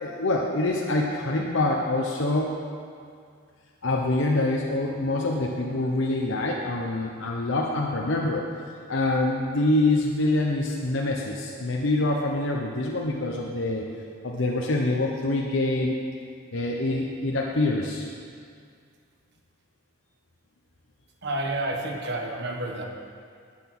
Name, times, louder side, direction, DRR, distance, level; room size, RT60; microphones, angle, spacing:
voice 1, 0.0-2.5 3.8-8.5 8.9-13.8 14.2-16.0 16.5-18.1, left 2 dB, 70° left, -1 dB, 0.9 m, -25 dB
voice 2, 21.2-22.8, right 1 dB, 60° right, 2 dB, 1.4 m, -30 dB
11.0 x 9.1 x 6.1 m, 2.2 s
head